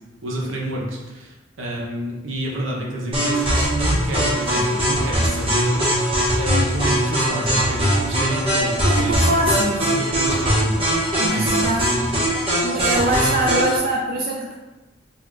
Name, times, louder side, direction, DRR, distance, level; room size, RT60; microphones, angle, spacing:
voice 1, 0.2-5.8 6.4-10.8 11.2-11.4, right 1 dB, 70° right, -3 dB, 1.0 m, -29 dB
sound 1, 3.1-13.8, equal, 25° right, 1.3 m, -21 dB
voice 2, 8.8-9.8 11.2-12.1 12.6-14.5, right 1 dB, 45° right, -2 dB, 0.4 m, -23 dB
4.0 x 3.6 x 3.2 m, 1.1 s
head